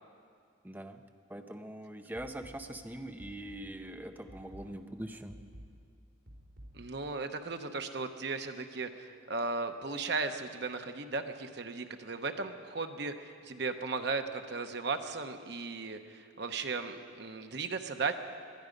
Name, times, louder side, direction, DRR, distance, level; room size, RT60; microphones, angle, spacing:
voice 1, 0.6-1.0 1.3-5.4, right 1 dB, 10° right, 6 dB, 0.6 m, -43 dB
sound 1, 2.1-7.1, equal, 75° right, 3.7 m, -53 dB
voice 2, 6.7-18.1, right 4 dB, 60° right, 7 dB, 0.9 m, -36 dB
21.0 x 12.0 x 5.2 m, 2.2 s
head